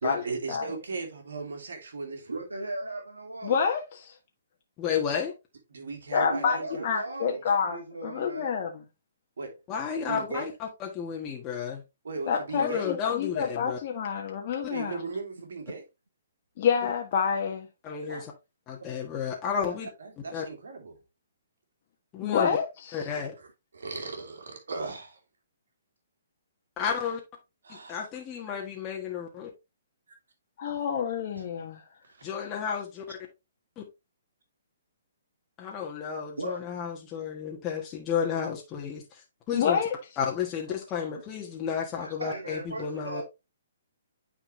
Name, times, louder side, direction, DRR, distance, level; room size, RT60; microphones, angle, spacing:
voice 1, 0.0-2.5 5.7-7.6 9.4-9.6 10.0-10.4 12.0-12.9 14.7-15.8 18.1-18.3 20.0-21.0 23.0-23.3 23.7-25.2 27.6-28.1 32.0-32.3, right 3 dB, 75° right, 2.4 m, -37 dB
voice 2, 2.3-3.6 6.1-8.5 36.4-36.6 42.0-43.2, right 2 dB, 90° right, 1.5 m, -37 dB
voice 3, 3.4-4.1 6.1-6.6 6.8-8.8 12.3-15.0 16.6-17.7 22.2-22.7 23.0-23.1 30.6-31.8 39.5-39.9, left 7 dB, 45° left, 1.3 m, -28 dB
voice 4, 4.8-5.3 9.7-11.8 12.6-13.8 14.6-14.7 17.8-18.3 18.7-19.9 20.3-20.5 22.1-22.6 22.9-23.3 26.8-27.2 27.7-29.5 32.2-33.2 33.8-33.9 35.6-39.8 40.2-43.2, left 7 dB, 25° left, 1.4 m, -32 dB
9.2 x 4.3 x 3.2 m
hypercardioid pair, 135°, 0 cm